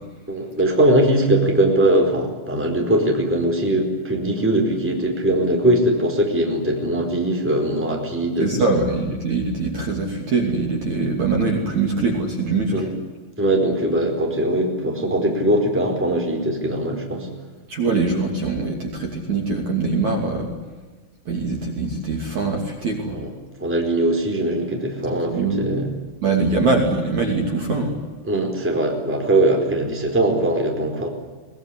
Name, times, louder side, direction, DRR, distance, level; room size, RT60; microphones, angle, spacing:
voice 1, 0.3-8.6 12.7-12.9 13.4-17.3 23.1-23.3 23.6-25.9 28.3-31.1, right 1 dB, 5° right, 1 dB, 3.9 m, -21 dB
voice 2, 8.4-12.9 17.7-20.5 21.3-23.2 25.3-25.8 26.2-28.0, right 3 dB, 45° right, 1 dB, 3.7 m, -22 dB
22.5 x 20.5 x 10.0 m, 1.3 s
omnidirectional pair, 5.1 m